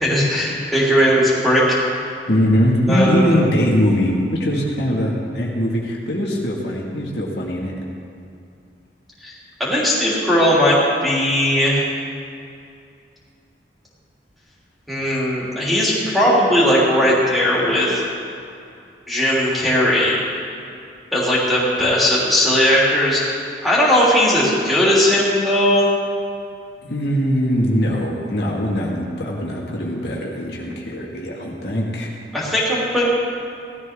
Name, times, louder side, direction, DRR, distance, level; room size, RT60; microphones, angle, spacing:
voice 1, 0.0-1.6 2.9-3.4 9.2-9.3 9.6-11.8 14.9-18.0 19.1-20.1 21.1-23.2 23.6-25.9 32.3-33.1, equal, ahead, -8 dB, 3.2 m, -18 dB
voice 2, 2.3-7.7 26.8-32.1, equal, 70° left, -3 dB, 1.9 m, -21 dB
17.0 x 13.0 x 3.7 m, 2.5 s
head